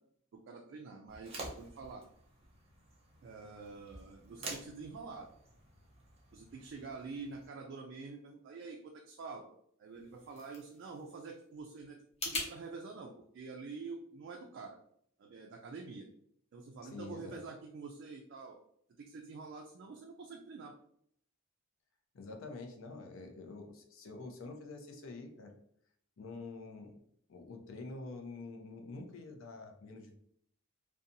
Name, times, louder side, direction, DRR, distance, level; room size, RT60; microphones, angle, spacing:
voice 1, 0.3-2.0 3.2-5.3 6.3-9.4 9.8-14.8 15.2-16.1 16.5-18.6 19.0-20.7, right 4 dB, 55° right, 1 dB, 0.3 m, -47 dB
sound 1, 1.1-7.5, right 2 dB, 30° right, 0.7 m, -50 dB
sound 2, 9.9-12.5, left 2 dB, 30° left, 0.7 m, -43 dB
voice 2, 16.8-17.4 22.1-25.5 26.2-27.0 27.3-30.3, left 3 dB, 65° left, 3 dB, 0.5 m, -47 dB
2.7 x 2.2 x 2.5 m, 0.68 s
head